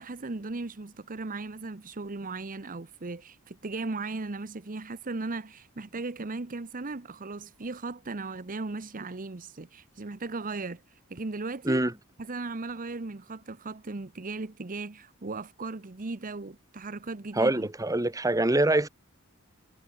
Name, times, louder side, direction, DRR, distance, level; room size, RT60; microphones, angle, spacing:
voice 1, 0.0-11.8 12.2-17.7, right 3 dB, 40° right, 0.9 m, -37 dB
voice 2, 17.3-18.9, right 1 dB, 15° right, 1.5 m, -24 dB
head